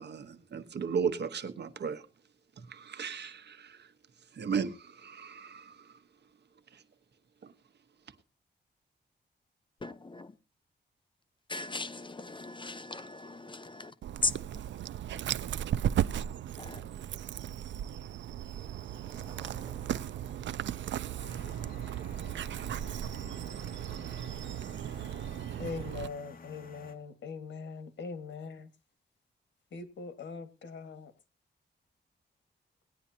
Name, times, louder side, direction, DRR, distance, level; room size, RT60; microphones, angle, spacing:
voice 1, 0.0-2.1 2.6-3.9 4.3-6.0 6.7-6.8 7.4-7.5, right 6 dB, 70° right, 1.2 m, -36 dB
voice 2, 9.8-10.3 11.5-14.0 14.2-14.6 15.1-15.2 16.6-17.0, left 3 dB, 25° left, 0.9 m, -37 dB
Dog, 14.0-26.1, right 10 dB, 90° right, 0.5 m, -36 dB
Car passing by / Engine, 17.5-23.3, right 2 dB, 20° right, 5.4 m, -58 dB
sound 1, 21.2-26.9, left 4 dB, 50° left, 1.9 m, -52 dB
voice 3, 25.6-28.7 29.7-31.1, left 4 dB, 90° left, 1.7 m, -41 dB
19.0 x 9.8 x 2.8 m
wide cardioid pair, 95°, 18 cm